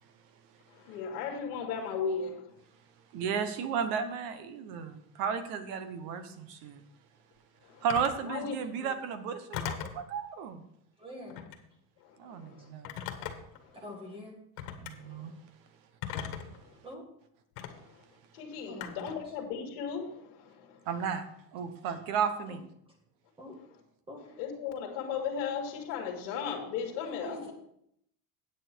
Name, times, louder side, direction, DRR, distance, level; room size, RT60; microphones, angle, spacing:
voice 1, 0.7-2.5 7.6-7.9 8.3-8.5 12.0-12.7 15.0-15.3 16.6-16.7 17.7-18.0 18.3-20.8 24.4-27.5, left 6 dB, 55° left, -1 dB, 2.1 m, -36 dB
voice 2, 3.1-6.8 7.8-10.6 12.2-12.9 14.8-15.3 20.9-21.2 21.5-22.6, right 7 dB, 45° right, 10 dB, 1.1 m, -34 dB
Telephone, 7.9-8.2 9.5-10.0 11.3-11.7 12.8-13.6 14.6-14.9 16.0-16.6 17.6-17.7 18.8-19.2, left 9 dB, 70° left, 1.6 m, -38 dB
voice 3, 11.0-11.5 12.6-12.7 13.8-14.4 16.8-17.0 18.7-19.3 22.4-22.6 23.4-23.6 24.1-24.3 27.0-27.5, equal, 10° right, 1 dB, 1.8 m, -45 dB
9.0 x 8.9 x 4.5 m, 0.73 s
cardioid pair, 170°, 47 cm